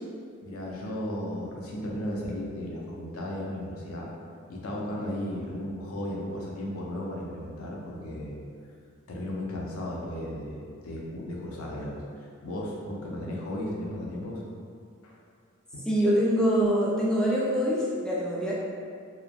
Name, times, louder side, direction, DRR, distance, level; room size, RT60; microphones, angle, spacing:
voice 1, 0.4-4.1 4.5-8.4 9.1-12.0 12.4-14.4 15.0-15.1 15.7-15.8, left 1 dB, 80° left, -3 dB, 0.5 m, -35 dB
voice 2, 15.9-18.5, equal, 5° left, -6 dB, 0.3 m, -24 dB
3.0 x 2.0 x 2.3 m, 2.3 s
head